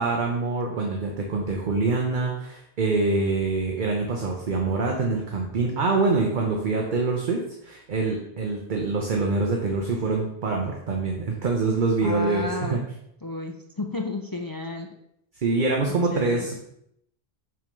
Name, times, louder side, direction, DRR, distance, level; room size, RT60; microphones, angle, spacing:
voice 1, 0.0-12.8 15.3-16.5, right 3 dB, 50° right, 1 dB, 0.9 m, -25 dB
voice 2, 12.0-12.8 13.2-14.9 16.1-16.5, left 2 dB, 35° left, 2 dB, 0.3 m, -32 dB
5.8 x 3.5 x 5.2 m, 0.76 s
omnidirectional pair, 1.1 m